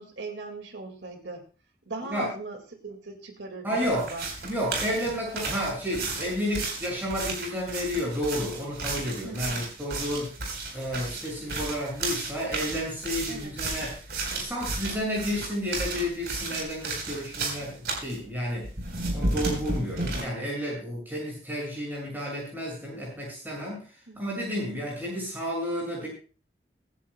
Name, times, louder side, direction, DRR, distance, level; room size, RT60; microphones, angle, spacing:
voice 1, 0.0-1.4 1.9-2.6 2.8-4.3 9.2-9.6 13.3-13.5 17.6-17.8 24.1-24.2, right 3 dB, 85° right, 4 dB, 2.2 m, -39 dB
voice 2, 3.6-4.1 4.5-10.3 10.7-14.0 14.3-18.7 19.1-23.9 24.2-26.1, equal, 10° right, -3 dB, 6.7 m, -31 dB
sound 1, 3.8-18.2 18.6-20.2, right 2 dB, 65° right, 4.3 m, -33 dB
23.5 x 11.0 x 2.3 m, 0.36 s
head